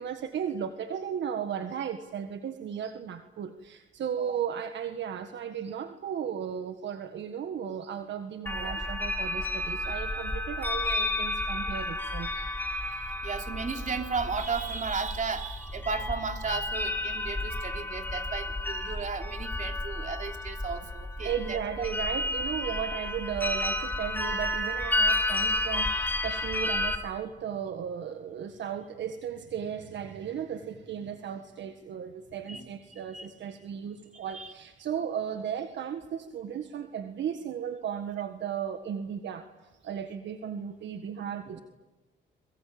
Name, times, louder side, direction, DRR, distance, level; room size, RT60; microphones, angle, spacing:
voice 1, 0.0-12.5 21.2-39.5 39.8-41.6, right 8 dB, 65° right, 8 dB, 1.7 m, -35 dB
sound 1, 8.5-27.0, left 1 dB, 10° left, 3.9 m, -31 dB
voice 2, 12.7-21.9 32.5-33.3 34.3-34.5 41.5-41.6, right 5 dB, 40° right, 5 dB, 3.2 m, -35 dB
26.5 x 23.0 x 8.8 m, 1.1 s
cardioid pair, 90°, 20 cm